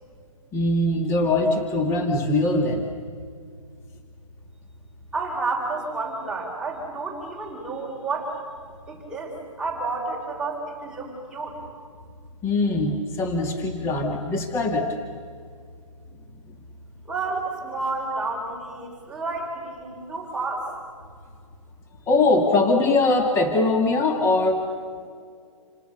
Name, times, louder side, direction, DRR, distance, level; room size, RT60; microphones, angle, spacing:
voice 1, 0.5-2.9 12.4-15.0 22.1-24.7, left 2 dB, 15° left, 3 dB, 2.0 m, -22 dB
voice 2, 5.1-8.4 8.9-11.6 16.8-20.7, right 3 dB, 5° right, -3 dB, 4.3 m, -30 dB
28.5 x 28.0 x 6.7 m, 2.2 s
hypercardioid pair, 155°, 17 cm